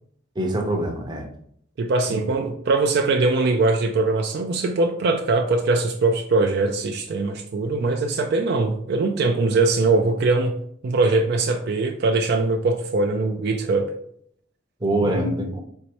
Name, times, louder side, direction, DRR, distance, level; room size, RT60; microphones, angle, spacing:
voice 1, 0.4-1.3 2.1-2.2 14.8-15.6, right 1 dB, 25° right, 2 dB, 0.6 m, -24 dB
voice 2, 1.8-10.5 10.8-13.9, right 3 dB, 55° right, 4 dB, 0.4 m, -21 dB
4.4 x 3.0 x 2.9 m, 0.67 s
head